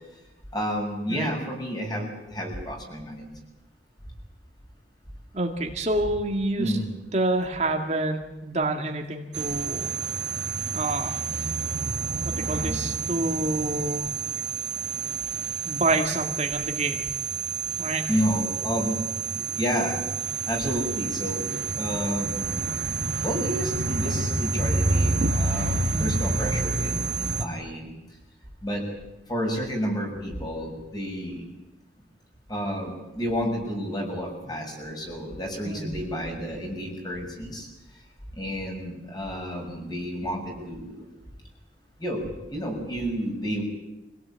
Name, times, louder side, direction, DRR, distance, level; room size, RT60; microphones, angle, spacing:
voice 1, 0.5-3.3 6.5-6.9 18.1-20.0 20.5-21.5 21.8-22.7 23.2-27.9 28.6-28.8 29.3-31.5 32.5-37.7 38.4-41.0 42.0-42.2 42.5-43.6, equal, 25° left, 1 dB, 6.6 m, -30 dB
voice 2, 5.3-6.7 7.1-9.9 10.7-11.1 12.4-14.1 15.7-17.1 17.8-18.1 25.8-26.1 35.7-35.9, right 2 dB, 40° right, 3 dB, 2.0 m, -27 dB
sound 1, 9.3-27.5, right 3 dB, 75° right, 2.0 m, -28 dB
25.5 x 17.5 x 8.8 m, 1.0 s
head